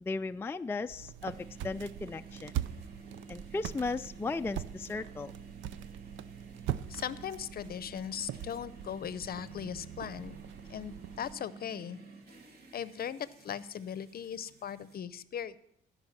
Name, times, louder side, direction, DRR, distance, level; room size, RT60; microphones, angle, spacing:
voice 1, 0.0-2.5 3.3-5.3, left 3 dB, 10° left, 9 dB, 0.3 m, -36 dB
sound 1, 0.9-11.4, right 11 dB, 75° right, 0.5 m, -42 dB
sound 2, 1.2-15.0, right 4 dB, 55° right, 2.4 m, -52 dB
voice 2, 6.9-10.4 10.7-12.0 12.7-15.6, left 8 dB, 50° left, 16 dB, 0.6 m, -39 dB
15.0 x 5.5 x 7.3 m, 0.75 s
cardioid pair, 90°, 20 cm